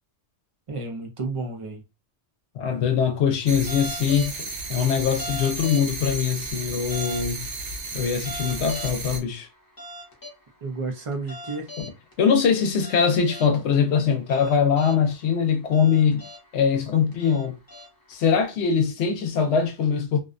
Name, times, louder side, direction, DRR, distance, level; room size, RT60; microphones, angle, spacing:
voice 1, 0.7-1.8 10.6-11.7, right 3 dB, 45° right, 0.4 m, -31 dB
voice 2, 2.6-7.5 7.9-9.5 11.8-11.9 12.2-16.2 16.5-17.6 18.1-20.2, left 7 dB, 75° left, 0.9 m, -22 dB
sound 1, 3.5-9.2, right 3 dB, 90° right, 0.9 m, -34 dB
sound 2, 3.7-4.4 5.1-6.1 6.9-7.3 8.1-9.1 9.8-10.4 11.1-12.1 12.8-13.5 14.1-15.1 15.7-16.5 17.1-18.1, left 1 dB, 20° left, 0.6 m, -39 dB
2.5 x 2.1 x 2.4 m
omnidirectional pair, 1.2 m